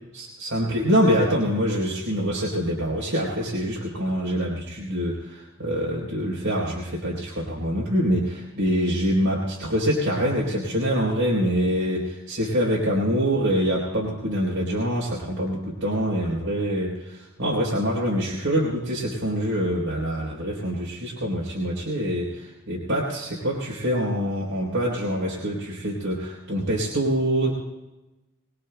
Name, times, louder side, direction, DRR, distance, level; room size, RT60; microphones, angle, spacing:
voice 1, 0.1-27.5, equal, 70° right, -5 dB, 3.8 m, -25 dB
24.5 x 19.5 x 2.3 m, 1.0 s
head